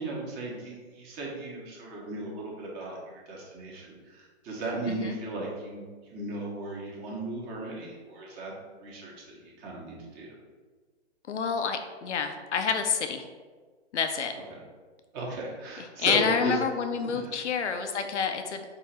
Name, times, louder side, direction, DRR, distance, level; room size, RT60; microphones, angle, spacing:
voice 1, 0.0-8.5 8.8-10.3 14.5-14.6 15.1-16.5 17.0-17.2, right 2 dB, 25° right, -3 dB, 1.1 m, -36 dB
voice 2, 4.9-5.2 11.3-13.3 13.9-14.3 16.0-18.6, left 6 dB, 90° left, 6 dB, 0.6 m, -28 dB
4.7 x 2.5 x 4.3 m, 1.5 s
hypercardioid pair, 135°, 34 cm